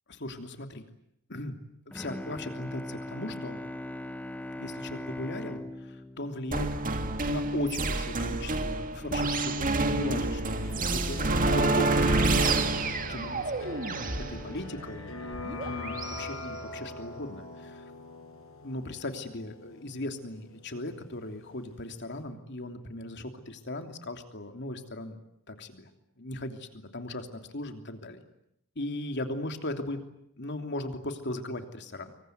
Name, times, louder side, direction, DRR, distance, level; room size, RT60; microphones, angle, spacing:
voice 1, 0.1-0.9 1.3-1.6 1.9-3.6 4.6-6.7 7.3-13.5 14.3-17.8 18.6-25.2 25.5-25.9 26.2-28.2 28.7-30.0 30.4-32.1, left 1 dB, 55° left, 6 dB, 3.1 m, -38 dB
Bowed string instrument, 1.9-7.5, left 1 dB, 5° left, 1.2 m, -40 dB
sound 1, 6.5-16.2, right 2 dB, 40° right, 2.1 m, -28 dB
sound 2, 10.0-21.7 22.0-22.1, left 3 dB, 80° left, 7.3 m, -42 dB
26.0 x 24.0 x 9.4 m, 0.78 s
head